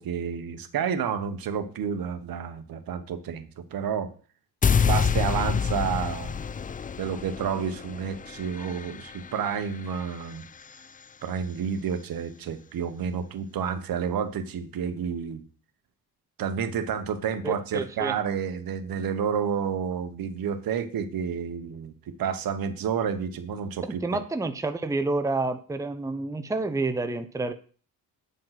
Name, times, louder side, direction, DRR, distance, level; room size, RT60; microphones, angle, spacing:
voice 1, 0.0-4.1 4.8-6.4 7.0-10.4 11.2-15.4 16.4-24.0, right 7 dB, 65° right, 10 dB, 1.3 m, -30 dB
sound 1, 4.6-10.8, left 6 dB, 25° left, 0.4 m, -28 dB
voice 2, 17.4-18.1 24.0-27.5, right 3 dB, 10° right, 9 dB, 0.7 m, -29 dB
9.1 x 5.4 x 5.9 m, 0.40 s
cardioid pair, 110°, 38 cm